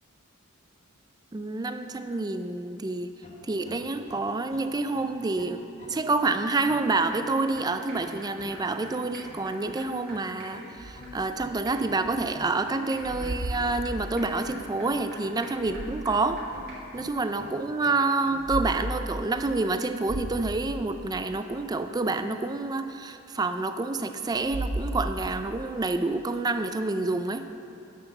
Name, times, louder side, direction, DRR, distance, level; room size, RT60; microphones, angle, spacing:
voice 1, 1.3-3.1 3.4-5.6 5.9-16.5 16.9-27.4, right 3 dB, 20° right, 9 dB, 0.3 m, -28 dB
sound 1, 3.2-18.8, left 1 dB, 30° left, 1.2 m, -46 dB
sound 2, 6.9-7.0 7.3-7.4 7.6-7.7 7.9-8.0 8.2-8.3 8.5-8.6 8.8-8.9 9.1-16.4 16.7-16.8, right 1 dB, 45° right, 2.3 m, -48 dB
sound 3, 10.8-12.4 12.7-14.5 15.4-16.4 16.9-17.0 18.2-18.7 19.1-19.2 19.7-19.8 20.0-21.3 24.3-25.4, right 1 dB, 75° right, 1.0 m, -36 dB
10.0 x 5.8 x 6.6 m, 2.7 s
head